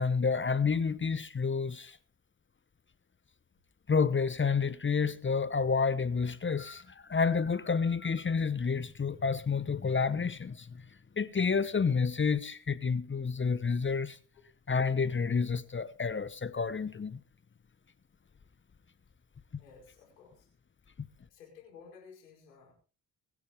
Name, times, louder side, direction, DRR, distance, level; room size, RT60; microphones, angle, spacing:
voice 1, 0.0-2.0 3.9-6.8 7.1-10.7 11.2-14.2 14.7-17.2, left 5 dB, 25° left, 1.0 m, -29 dB
voice 2, 19.6-20.5 21.3-22.7, left 6 dB, 85° left, 4.8 m, -54 dB
23.0 x 9.9 x 3.5 m
hypercardioid pair, 50°, 47 cm